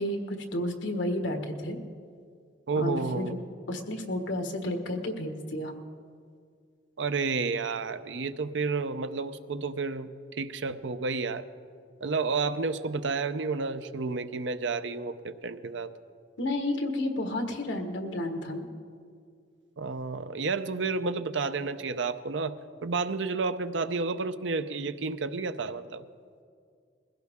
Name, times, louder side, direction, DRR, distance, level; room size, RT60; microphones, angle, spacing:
voice 1, 0.0-1.8 2.7-3.4 3.7-5.7 16.4-18.7, left 1 dB, 90° left, 5 dB, 1.5 m, -31 dB
voice 2, 2.7-3.4 7.0-11.5 12.0-15.9 19.8-26.0, right 4 dB, 90° right, 11 dB, 0.7 m, -31 dB
21.0 x 16.0 x 3.7 m, 2.2 s
head